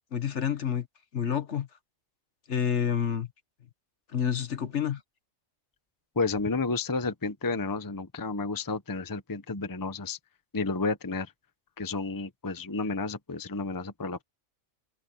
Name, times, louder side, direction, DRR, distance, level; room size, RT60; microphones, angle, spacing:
voice 1, 0.1-0.9 1.1-1.7 2.5-3.3 4.1-5.0, left 8 dB, 60° left, 1.5 m, -28 dB
voice 2, 6.2-10.2 10.5-11.3 11.8-14.2, left 3 dB, 20° left, 0.8 m, -31 dB
open air
omnidirectional pair, 1.4 m